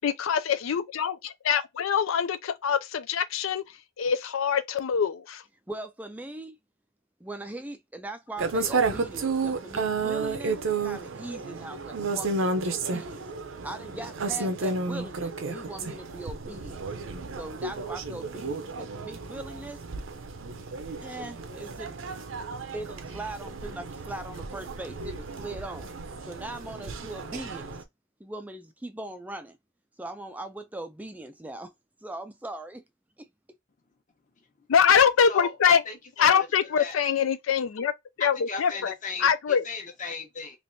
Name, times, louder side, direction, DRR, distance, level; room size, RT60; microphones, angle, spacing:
voice 1, 0.0-3.6 4.0-5.4 34.7-35.8 36.2-37.9 38.2-38.9 39.2-39.6, left 7 dB, 80° left, 0.4 m, -24 dB
voice 2, 5.7-6.6 7.2-13.2 13.6-16.8 17.3-19.8 21.0-22.0 22.7-25.9 26.3-27.7 28.2-29.6 30.0-31.7 32.0-32.8 33.2-33.3, right 2 dB, 10° right, 0.3 m, -40 dB
sound 1, 8.4-27.8, right 3 dB, 75° right, 0.6 m, -32 dB
voice 3, 35.3-37.0 38.2-40.6, left 4 dB, 40° left, 0.9 m, -37 dB
3.3 x 3.0 x 2.6 m
head